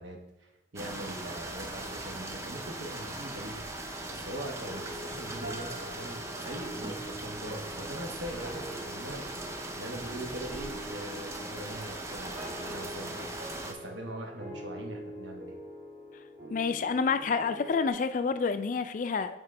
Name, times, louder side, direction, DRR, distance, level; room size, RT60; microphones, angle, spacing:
voice 1, 0.0-3.8 4.1-15.6, right 1 dB, 85° right, 2 dB, 1.1 m, -42 dB
sound 1, 0.8-13.7, right 2 dB, 15° right, 0.5 m, -39 dB
sound 2, 4.6-17.9, equal, 45° right, 1.9 m, -45 dB
voice 2, 16.5-19.4, left 5 dB, 45° left, 11 dB, 0.3 m, -28 dB
8.9 x 3.7 x 3.3 m, 1.0 s
head